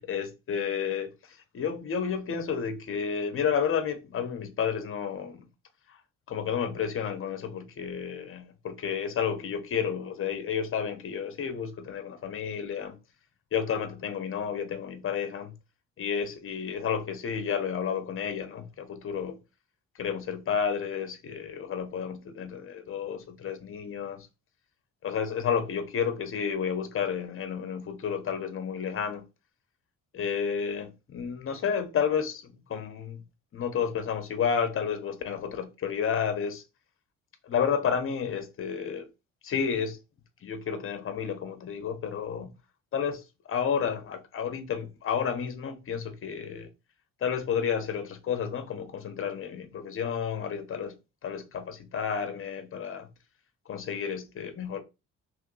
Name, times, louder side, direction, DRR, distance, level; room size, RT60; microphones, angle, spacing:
voice 1, 0.0-5.5 6.3-13.0 13.5-15.5 16.0-19.4 20.0-24.3 25.0-29.2 30.1-33.2 33.5-36.6 37.4-39.1 39.4-40.0 40.4-42.5 42.9-46.7 47.2-51.0 51.2-53.1 53.7-54.8, left 7 dB, 45° left, 0.8 m, -31 dB
3.1 x 2.8 x 3.7 m
cardioid pair, 90°, 30 cm